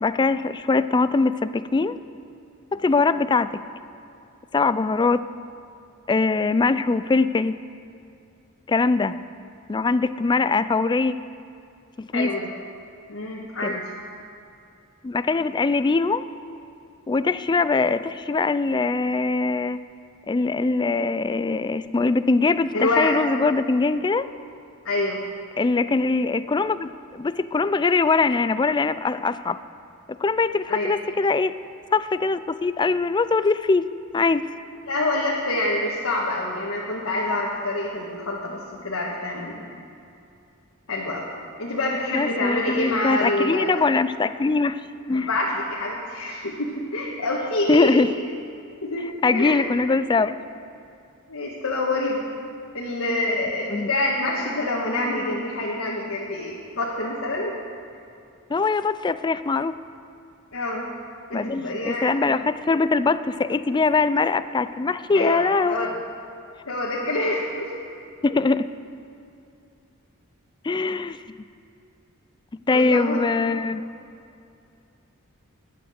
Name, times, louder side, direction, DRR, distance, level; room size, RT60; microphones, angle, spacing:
voice 1, 0.0-2.0 2.7-3.5 4.5-5.2 6.1-7.5 8.7-9.1 9.7-11.1 12.0-12.3 13.6-13.7 15.0-16.2 17.1-19.8 20.3-24.3 25.6-29.6 30.1-31.5 31.9-33.9 34.1-34.5 42.1-44.8 45.1-45.3 47.7-48.1 49.2-50.4 53.7-53.9 58.5-59.8 61.3-65.9 68.2-68.6 70.6-71.2 72.7-73.8, left 3 dB, 20° left, 13 dB, 0.3 m, -22 dB
voice 2, 12.1-12.5 13.1-13.8 22.7-23.2 24.8-25.2 30.7-30.9 34.8-39.6 40.9-41.2 41.6-43.8 45.1-48.0 48.8-49.6 51.3-52.2 52.7-57.5 60.5-60.8 61.3-62.1 65.1-65.9 66.6-67.7 72.7-73.2, left 2 dB, 70° left, -4 dB, 1.7 m, -26 dB
20.0 x 7.9 x 6.5 m, 2.6 s
head